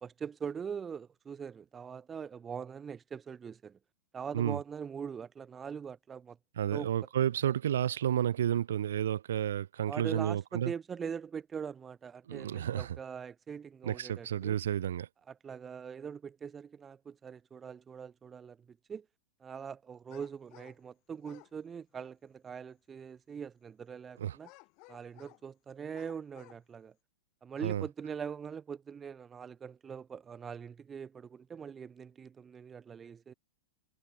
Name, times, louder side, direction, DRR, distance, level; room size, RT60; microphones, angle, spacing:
voice 1, 0.0-3.8 4.1-6.4 6.7-6.9 9.9-14.6 15.3-19.1 19.4-24.5 24.9-26.9 27.4-33.3, right 7 dB, 15° right, 1.9 m, -42 dB
voice 2, 6.6-10.7 12.3-13.0 13.8-15.1 24.2-24.4 27.6-27.8, right 10 dB, 80° right, 1.0 m, -31 dB
sound 1, 20.1-20.8 21.2-21.5 24.4-25.4 25.9-26.6, left 30 dB, 35° left, 1.3 m, -57 dB
supercardioid pair, 165°, 0 cm